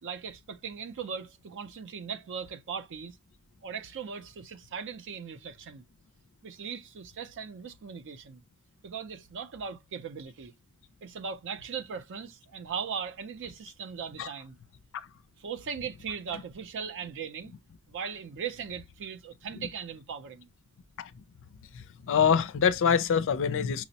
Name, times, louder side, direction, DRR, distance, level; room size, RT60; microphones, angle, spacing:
voice 1, 0.0-3.2 3.6-5.8 6.4-8.4 8.8-10.5 11.0-14.6 15.4-17.5 17.9-20.5, right 6 dB, 55° right, 0.4 m, -39 dB
voice 2, 22.1-23.8, left 7 dB, 60° left, 0.4 m, -24 dB
5.8 x 2.0 x 2.7 m
head